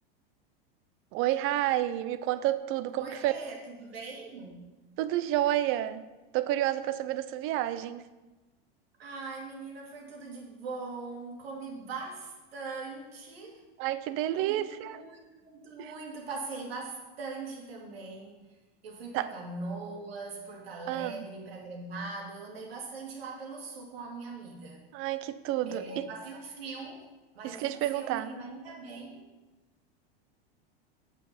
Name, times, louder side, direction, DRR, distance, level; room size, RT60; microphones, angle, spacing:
voice 1, 1.1-3.3 5.0-6.0 6.3-8.0 13.8-15.0 15.8-15.9 19.1-19.3 20.9-21.3 24.9-26.0 27.4-28.3, right 13 dB, 45° right, 13 dB, 0.6 m, -30 dB
voice 2, 3.0-4.6 9.0-13.6 14.4-18.4 18.8-24.8 25.7-27.1 27.3-29.3, right 3 dB, 90° right, 0 dB, 2.3 m, -41 dB
8.2 x 5.5 x 5.9 m, 1.1 s
supercardioid pair, 115°, 30 cm